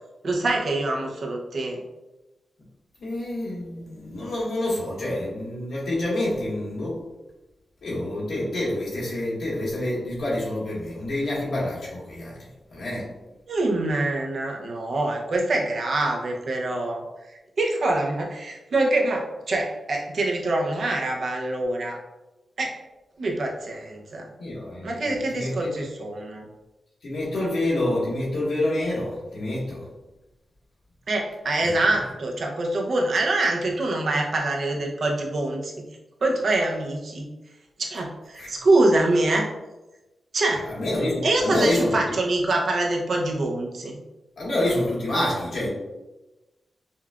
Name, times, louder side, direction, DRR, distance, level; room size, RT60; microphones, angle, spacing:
voice 1, 0.2-1.8 13.5-17.0 17.6-22.0 22.6-22.7 23.2-24.3 24.8-26.5 31.1-35.8 36.2-37.3 37.8-39.5 40.3-40.6 41.2-44.0, right 2 dB, 55° right, 0 dB, 0.6 m, -25 dB
voice 2, 3.0-7.0 7.8-13.1 24.4-25.8 27.0-29.9 31.6-31.7 38.4-38.5 40.7-41.9 44.4-45.7, left 1 dB, 80° left, -6 dB, 1.5 m, -27 dB
5.4 x 2.3 x 2.3 m, 1.0 s
wide cardioid pair, 150°, 0 cm